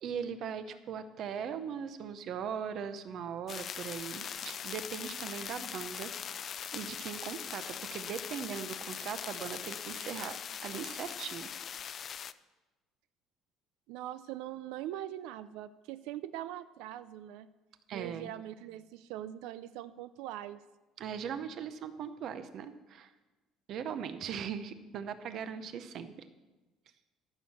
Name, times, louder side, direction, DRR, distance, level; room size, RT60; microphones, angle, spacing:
voice 1, 0.0-6.1 6.4-11.5 17.9-18.3 21.0-23.1 23.7-26.3, right 7 dB, 40° right, 11 dB, 0.7 m, -39 dB
sound 1, 3.5-12.3, left 8 dB, 30° left, 0.3 m, -41 dB
voice 2, 13.9-17.5 17.9-20.6, right 13 dB, 85° right, 14 dB, 0.4 m, -42 dB
13.5 x 6.4 x 7.1 m, 1.2 s
cardioid pair, 175°, 0 cm